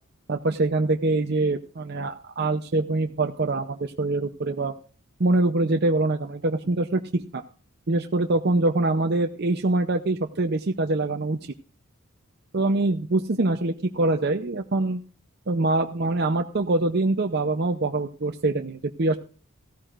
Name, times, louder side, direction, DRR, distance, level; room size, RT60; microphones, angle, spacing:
voice 1, 0.3-4.7 5.2-7.4 7.9-11.4 12.5-15.0 15.5-19.2, right 2 dB, 50° right, 5 dB, 0.7 m, -24 dB
15.5 x 13.5 x 2.5 m, 0.39 s
head